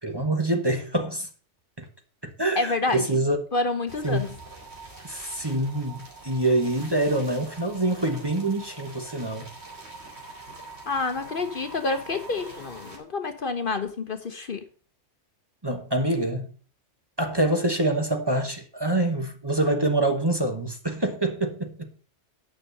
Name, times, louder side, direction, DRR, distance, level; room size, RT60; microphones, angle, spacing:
voice 1, 0.0-1.3 1.8-1.9 2.2-3.4 4.0-4.3 5.0-9.5 15.6-16.5 17.2-21.9, right 1 dB, 20° right, 1.2 m, -25 dB
voice 2, 2.6-3.2 3.5-4.3 10.9-14.6, left 3 dB, 50° left, 1.0 m, -28 dB
sound 1, 3.9-13.0, right 2 dB, 65° right, 3.3 m, -44 dB
9.8 x 6.4 x 6.7 m
omnidirectional pair, 1.2 m